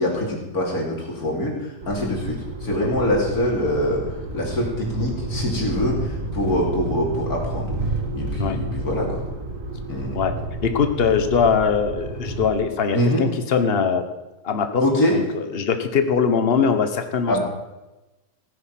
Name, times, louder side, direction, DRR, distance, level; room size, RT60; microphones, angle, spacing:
voice 1, 0.0-4.0 4.3-7.7 8.1-9.2 9.9-10.2 12.9-13.2 14.8-15.1 17.3-17.4, left 1 dB, 60° left, -2 dB, 3.6 m, -24 dB
sound 1, 1.8-12.5, right 1 dB, 50° right, 2.2 m, -30 dB
voice 2, 10.6-14.1 14.4-14.8 15.1-17.4, left 6 dB, 40° left, 8 dB, 1.3 m, -21 dB
16.0 x 9.8 x 5.9 m, 1.0 s
omnidirectional pair, 1.8 m